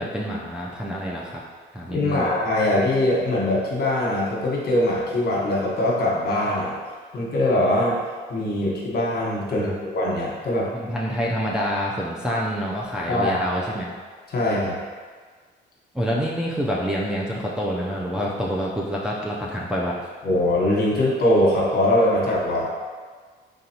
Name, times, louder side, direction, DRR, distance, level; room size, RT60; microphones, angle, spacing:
voice 1, 0.0-1.4 1.7-2.3 9.5-9.8 10.7-13.9 15.9-20.1, equal, 5° right, -5 dB, 0.5 m, -27 dB
voice 2, 1.9-6.7 7.1-8.0 8.3-10.7 13.1-13.5 14.3-14.7 20.2-22.7, left 1 dB, 50° left, -4 dB, 1.3 m, -22 dB
4.0 x 3.9 x 2.9 m, 1.5 s
cardioid pair, 90°, 20 cm